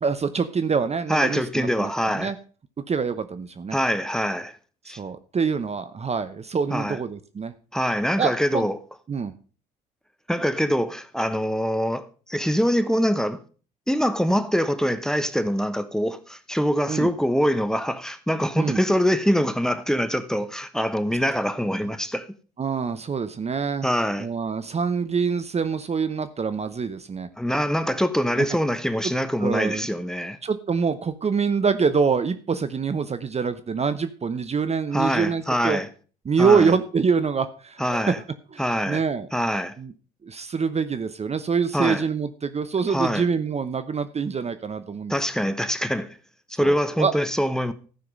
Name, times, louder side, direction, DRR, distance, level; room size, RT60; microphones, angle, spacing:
voice 1, 0.0-2.4 2.9-3.8 4.8-7.5 8.2-8.7 9.1-9.3 16.9-17.1 18.6-18.8 22.6-23.9 24.2-27.3 28.3-28.5 29.0-29.1 29.4-29.9 30.4-35.8 36.2-38.2 38.5-39.3 39.8-39.9 40.2-45.2 46.6-47.1, right 5 dB, 30° right, 0.8 m, -25 dB
voice 2, 1.1-2.3 3.7-4.6 4.9-5.0 6.7-7.0 7.7-8.8 10.3-13.4 13.9-22.3 23.8-24.3 27.4-30.4 34.9-35.9 36.4-36.7 37.8-38.2 38.6-39.0 39.3-39.7 41.7-42.0 42.9-43.2 45.1-46.2 46.5-47.7, equal, 5° left, 1.1 m, -24 dB
14.0 x 5.8 x 5.3 m
hypercardioid pair, 55°, 21 cm